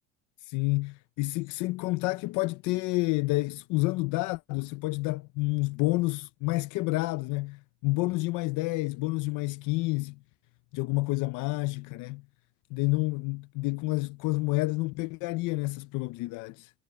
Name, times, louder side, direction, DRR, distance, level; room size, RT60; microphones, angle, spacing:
voice 1, 0.5-10.2 10.7-12.2 12.7-16.7, left 22 dB, 90° left, 0.7 m, -29 dB
cardioid pair, 155°, 29 cm